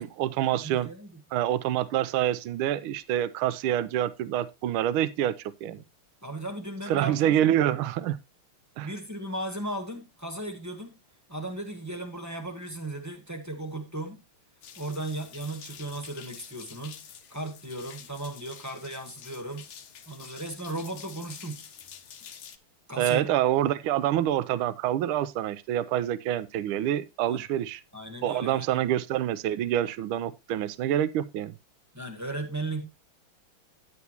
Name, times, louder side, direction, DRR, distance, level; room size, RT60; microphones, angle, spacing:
voice 1, 0.0-0.9 1.3-5.8 6.9-8.2 8.8-8.9 23.0-27.8 28.2-31.5, right 11 dB, 80° right, 1.5 m, -27 dB
voice 2, 0.6-1.1 6.2-7.5 8.8-11.0 11.3-14.2 14.7-17.0 17.3-19.7 20.1-21.6 22.9-23.3 27.3-27.4 27.9-28.8 31.9-32.8, right 1 dB, 10° right, 1.2 m, -36 dB
sound 1, 14.6-22.6, left 8 dB, 60° left, 1.5 m, -48 dB
9.7 x 9.5 x 2.9 m
omnidirectional pair, 2.3 m